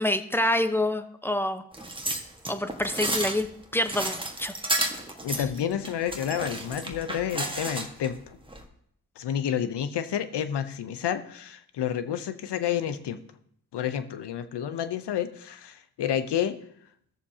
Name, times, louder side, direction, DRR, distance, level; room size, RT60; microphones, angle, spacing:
voice 1, 0.0-1.6 2.5-3.5 3.7-4.5, left 1 dB, 5° left, 9 dB, 0.9 m, -27 dB
sound 1, 1.7-8.1 8.5-8.6, right 1 dB, 10° right, 1.5 m, -32 dB
voice 2, 5.2-8.4 9.2-13.2 13.7-16.6, left 9 dB, 75° left, 11 dB, 0.8 m, -30 dB
16.0 x 6.8 x 2.8 m, 0.69 s
supercardioid pair, 40°, 41 cm